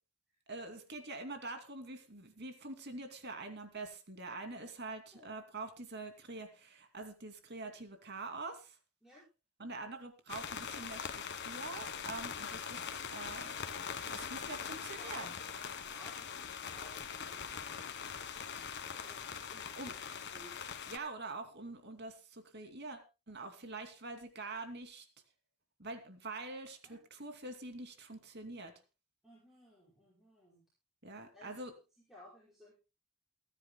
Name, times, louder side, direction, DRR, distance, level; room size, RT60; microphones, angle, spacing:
voice 1, 0.5-8.8 9.6-13.5 14.0-15.4 19.7-19.9 20.9-25.0 25.8-28.7 31.0-31.7, right 3 dB, 50° right, 6 dB, 2.7 m, -45 dB
sound 1, 10.3-21.0, left 7 dB, 55° left, 1.4 m, -42 dB
voice 2, 14.0-14.7 15.0-15.3 15.5-18.0 18.5-20.0 20.3-20.6 26.8-27.0 29.2-30.6 31.3-31.7 32.1-32.7, equal, ahead, -8 dB, 5.9 m, -58 dB
28.5 x 10.0 x 2.2 m, 0.30 s
head